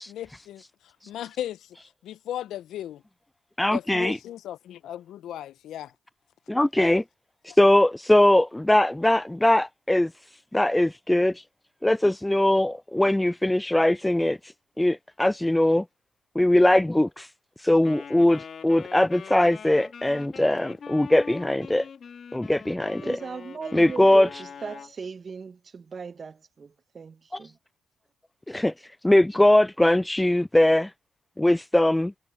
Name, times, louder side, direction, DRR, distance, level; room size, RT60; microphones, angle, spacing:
voice 1, 0.0-1.8 2.0-3.0 3.7-5.9, left 12 dB, 70° left, 0.9 m, -36 dB
voice 2, 3.6-4.2 6.5-7.0 7.4-10.1 10.5-11.4 11.8-15.8 16.4-17.3 17.6-21.9 22.3-23.2 23.7-24.3 28.5-28.7 29.0-30.9 31.4-32.1, left 1 dB, 10° left, 0.4 m, -21 dB
Wind instrument woodwind instrument, 17.8-24.9, left 6 dB, 55° left, 4.3 m, -43 dB
voice 3, 23.0-27.6, right 5 dB, 45° right, 1.6 m, -38 dB
hypercardioid pair, 50°, 0 cm